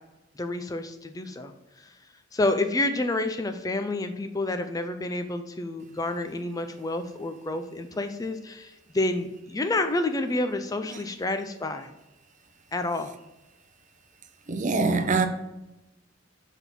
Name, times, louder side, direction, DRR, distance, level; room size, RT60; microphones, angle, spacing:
voice 1, 0.4-1.9 2.3-11.9 12.7-13.1, left 2 dB, 20° left, 0.4 m, -29 dB
voice 2, 14.5-15.3, right 3 dB, 40° right, 0.6 m, -24 dB
5.9 x 3.6 x 5.8 m
head